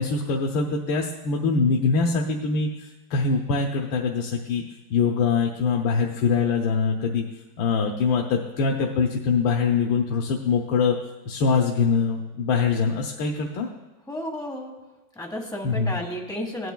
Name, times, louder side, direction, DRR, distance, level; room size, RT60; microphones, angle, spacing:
voice 1, 0.0-2.7 3.1-4.6 4.9-7.2 7.6-11.0 11.3-13.7 15.6-16.0, left 5 dB, 90° left, 1 dB, 1.5 m, -23 dB
voice 2, 14.1-14.7 15.1-16.7, left 1 dB, ahead, 0 dB, 1.1 m, -32 dB
16.5 x 9.1 x 2.2 m, 1.1 s
omnidirectional pair, 2.0 m